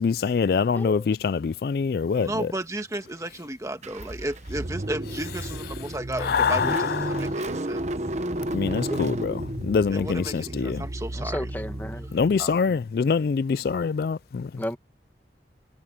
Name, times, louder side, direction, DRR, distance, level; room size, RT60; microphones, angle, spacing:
voice 1, 0.0-2.5 6.2-7.4 8.5-10.8 12.1-14.6, left 5 dB, 55° left, 0.3 m, -25 dB
voice 2, 0.7-1.1 8.9-9.0 11.2-12.1 14.6-14.8, equal, 10° left, 1.6 m, -32 dB
voice 3, 2.2-7.8 9.9-11.5 12.4-12.6, right 1 dB, 15° right, 1.5 m, -34 dB
Car / Engine starting, 3.8-12.6, right 1 dB, 40° right, 1.0 m, -32 dB
head